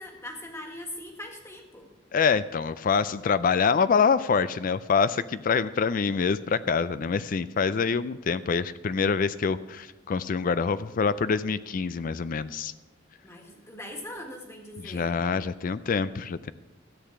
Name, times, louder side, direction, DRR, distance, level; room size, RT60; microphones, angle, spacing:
voice 1, 0.0-1.9 13.2-15.2, left 1 dB, 15° left, 2 dB, 1.7 m, -41 dB
voice 2, 2.1-12.7 14.8-16.5, left 5 dB, 45° left, 15 dB, 0.4 m, -25 dB
13.0 x 8.6 x 5.9 m, 1.1 s
head